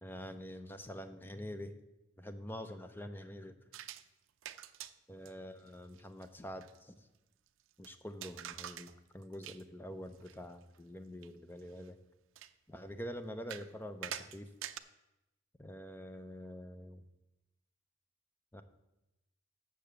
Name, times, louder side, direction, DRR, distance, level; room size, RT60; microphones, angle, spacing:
voice 1, 0.0-1.7 2.2-3.6 5.1-7.0 7.8-12.0 12.7-14.5 15.6-17.0 18.5-18.6, equal, 10° left, 9 dB, 0.5 m, -46 dB
sound 1, 3.7-4.0 4.4-4.9 5.3-5.4 5.7-5.8 6.0-6.3 6.6-6.8 7.8-7.9 8.2-8.9 9.2-9.6 10.1-10.3 10.7-10.8 11.2-11.3 11.8-11.9 12.4-12.5 13.5-13.7 14.0-14.8, right 11 dB, 70° right, 0.4 m, -45 dB
6.9 x 6.8 x 7.6 m, 0.95 s
head